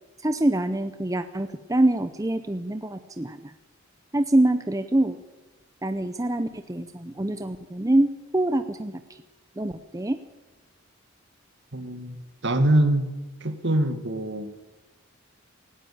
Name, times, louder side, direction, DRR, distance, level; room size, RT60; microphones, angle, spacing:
voice 1, 0.2-3.5 4.1-5.2 5.8-9.2 9.6-10.2, right 1 dB, 15° right, 9 dB, 0.7 m, -25 dB
voice 2, 11.7-13.1 13.4-14.5, right 1 dB, 55° right, 8 dB, 2.1 m, -24 dB
19.0 x 17.0 x 8.7 m, 1.2 s
head